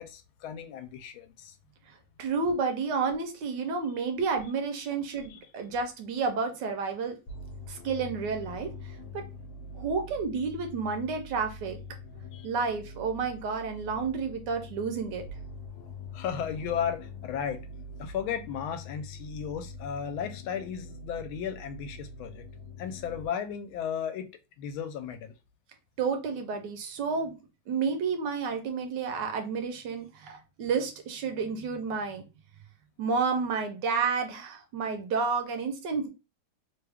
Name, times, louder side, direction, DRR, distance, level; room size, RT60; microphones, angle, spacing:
voice 1, 0.0-1.5 5.3-5.4 12.3-12.5 16.1-17.6 18.0-22.4 22.8-24.3 24.6-25.3, left 8 dB, 85° left, 1.4 m, -35 dB
voice 2, 2.2-7.2 7.7-8.7 9.1-9.2 9.7-11.8 12.4-15.2 26.0-27.3 27.7-32.2 33.0-36.1, right 5 dB, 70° right, 1.2 m, -30 dB
sound 1, 7.3-23.3, left 2 dB, 70° left, 1.0 m, -44 dB
3.3 x 2.3 x 3.3 m
omnidirectional pair, 2.2 m